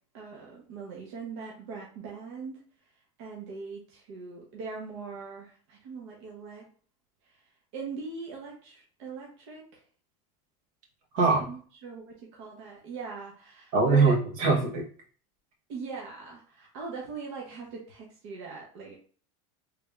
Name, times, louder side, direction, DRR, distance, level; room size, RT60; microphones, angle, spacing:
voice 1, 0.1-2.6 3.2-6.6 7.2-7.4 7.7-9.8 11.5-14.2 15.7-19.0, right 5 dB, 60° right, -2 dB, 0.8 m, -41 dB
voice 2, 11.1-11.5 13.7-14.8, right 4 dB, 80° right, 0 dB, 1.1 m, -22 dB
3.4 x 2.4 x 3.2 m, 0.43 s
supercardioid pair, 165°, 17 cm